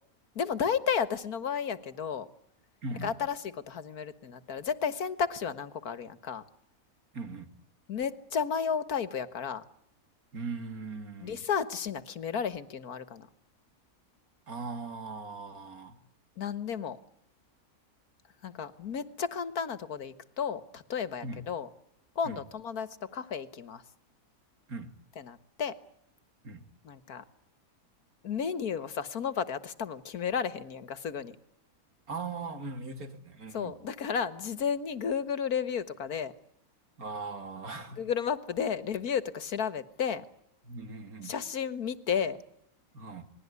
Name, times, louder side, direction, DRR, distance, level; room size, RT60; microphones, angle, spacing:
voice 1, 0.4-2.3 3.0-6.4 7.9-9.6 11.2-13.3 16.4-17.0 18.4-21.7 22.2-23.8 25.2-25.7 26.8-27.2 28.2-31.4 33.5-36.3 38.0-40.2 41.2-42.4, left 7 dB, 80° left, 2.0 m, -33 dB
voice 2, 2.8-3.2 7.1-7.5 10.3-11.5 14.5-16.0 21.2-21.4 22.2-22.4 24.7-25.0 26.4-26.6 32.1-33.7 37.0-38.0 40.6-41.3 42.9-43.3, right 3 dB, 75° right, 3.3 m, -39 dB
27.5 x 21.0 x 9.6 m
omnidirectional pair, 1.6 m